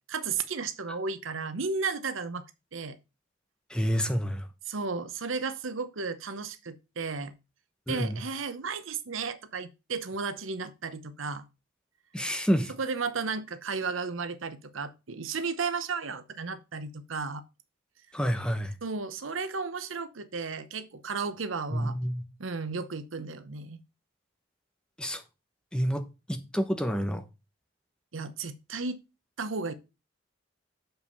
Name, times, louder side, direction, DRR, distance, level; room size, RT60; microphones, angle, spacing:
voice 1, 0.1-2.4 2.7-3.0 4.7-7.3 7.9-11.4 12.8-17.4 18.8-22.0 22.4-23.8 28.1-29.0 29.4-29.7, right 4 dB, 85° right, 0.9 m, -34 dB
voice 2, 3.7-4.4 7.9-8.2 12.1-12.7 18.1-18.7 21.7-22.2 25.0-25.2 25.7-27.2, equal, 5° left, 1.0 m, -28 dB
7.1 x 5.7 x 5.4 m
head